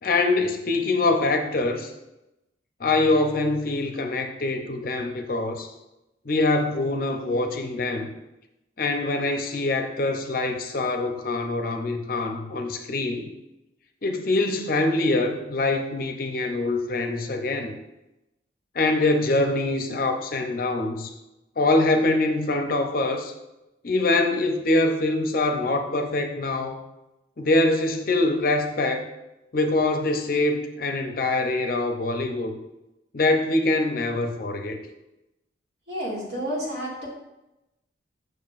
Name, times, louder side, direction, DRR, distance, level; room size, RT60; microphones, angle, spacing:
voice 1, 0.0-1.9 2.8-5.7 6.2-8.1 8.8-13.3 14.0-17.7 18.7-21.1 21.6-23.3 23.8-26.8 27.4-29.0 29.5-32.5 33.1-34.8, left 2 dB, 50° left, 5 dB, 0.6 m, -24 dB
voice 2, 35.9-37.1, equal, 65° right, -5 dB, 2.1 m, -30 dB
6.9 x 6.3 x 2.5 m, 0.95 s
head